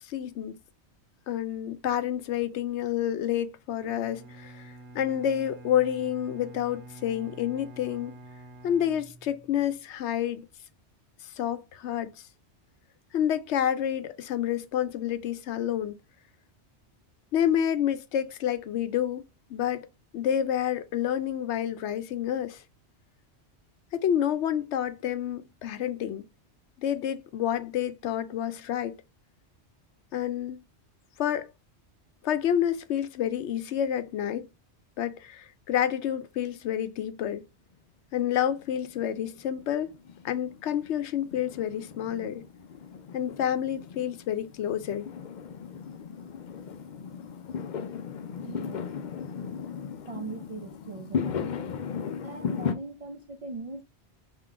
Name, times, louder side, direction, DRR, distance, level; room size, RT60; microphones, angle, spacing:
voice 1, 0.1-0.5 1.3-8.1 8.6-10.5 11.4-12.1 13.1-15.9 17.3-19.9 20.1-22.6 23.9-26.2 26.8-28.9 30.1-30.6 31.2-31.5 32.2-34.5 35.0-37.4 38.1-39.9 40.2-42.4 43.1-45.1, left 10 dB, 80° left, 0.9 m, -29 dB
Bowed string instrument, 3.8-9.8, right 1 dB, 85° right, 1.1 m, -47 dB
Fireworks, 38.2-52.7, left 7 dB, 55° left, 0.5 m, -37 dB
voice 2, 48.4-48.9 50.0-51.6 52.2-53.8, right 3 dB, 50° right, 0.4 m, -40 dB
3.8 x 2.8 x 4.6 m
omnidirectional pair, 1.2 m